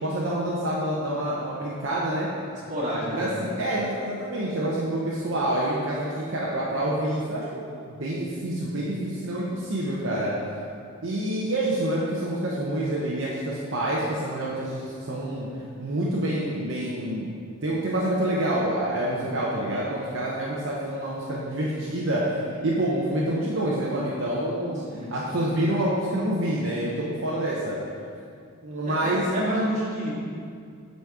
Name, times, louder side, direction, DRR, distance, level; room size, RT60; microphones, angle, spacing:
voice 1, 0.0-2.3 3.1-10.3 11.0-15.5 15.8-17.3 17.6-24.8 25.1-27.8 28.6-29.3, right 1 dB, 60° right, -6 dB, 0.8 m, -27 dB
voice 2, 2.7-3.5 19.0-19.3 24.9-25.4 28.8-30.1, equal, 35° right, -7 dB, 1.8 m, -30 dB
8.2 x 4.1 x 4.8 m, 2.3 s
head